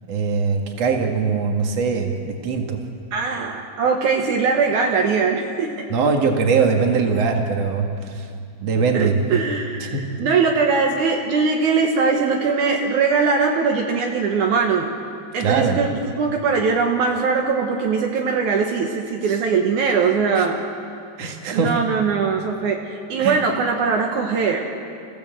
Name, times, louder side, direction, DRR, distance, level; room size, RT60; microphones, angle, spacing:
voice 1, 0.1-2.8 5.9-8.3 8.6-9.2 9.8-10.0 15.4-15.8 20.4-20.5 21.2-21.7 23.2-23.4, right 5 dB, 50° right, 2 dB, 2.0 m, -21 dB
voice 2, 3.1-5.7 8.9-14.9 15.3-20.6 21.5-24.6, right 5 dB, 75° right, 1 dB, 1.8 m, -21 dB
29.0 x 16.0 x 7.9 m, 2.4 s
omnidirectional pair, 5.6 m